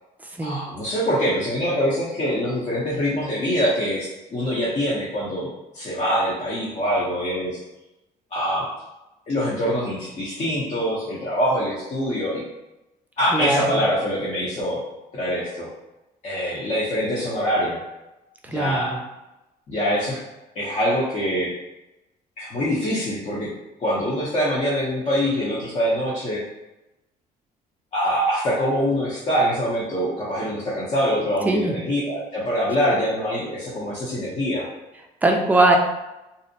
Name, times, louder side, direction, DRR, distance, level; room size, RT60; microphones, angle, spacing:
voice 1, 0.4-5.5 5.7-7.6 8.3-8.7 9.3-12.4 13.2-14.8 15.1-15.7 16.2-17.8 18.5-19.0 19.7-20.2 20.5-21.5 22.4-23.5 23.8-26.4 27.9-34.7, equal, 40° left, -8 dB, 0.7 m, -24 dB
voice 2, 13.3-13.8 18.5-18.8 31.5-31.7 35.2-35.8, right 2 dB, 10° right, 2 dB, 0.3 m, -20 dB
2.5 x 2.0 x 2.7 m, 0.97 s
cardioid pair, 110°, 17 cm